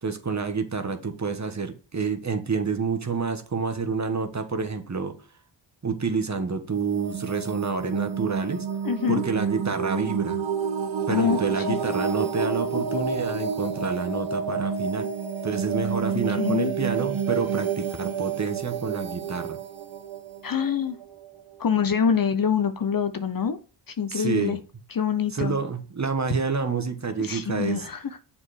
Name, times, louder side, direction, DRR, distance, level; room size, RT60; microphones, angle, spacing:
voice 1, 0.0-5.1 5.8-8.7 9.1-10.4 11.1-15.1 15.4-19.6 24.1-24.6 25.3-27.9, right 5 dB, 35° right, 7 dB, 1.5 m, -28 dB
sound 1, 6.7-21.4, right 6 dB, 65° right, 1.2 m, -29 dB
voice 2, 8.8-9.2 11.1-11.8 16.4-16.7 20.4-21.0 21.6-23.6 23.9-24.6 24.9-25.6 27.2-28.0, left 7 dB, 45° left, 10 dB, 0.9 m, -25 dB
7.1 x 4.4 x 5.0 m, 0.36 s
cardioid pair, 50°, 50 cm